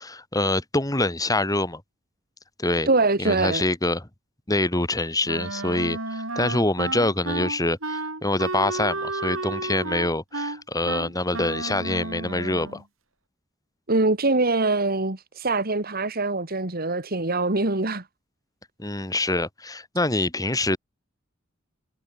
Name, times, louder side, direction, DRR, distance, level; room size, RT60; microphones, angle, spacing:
voice 1, 0.0-1.8 2.6-2.9 3.2-4.1 4.5-12.8 18.8-20.8, left 2 dB, 20° left, 2.7 m, -25 dB
voice 2, 2.9-3.6 13.9-18.0, right 2 dB, 50° right, 2.5 m, -23 dB
Wind instrument woodwind instrument, 5.2-12.8, right 2 dB, 85° right, 6.5 m, -32 dB
head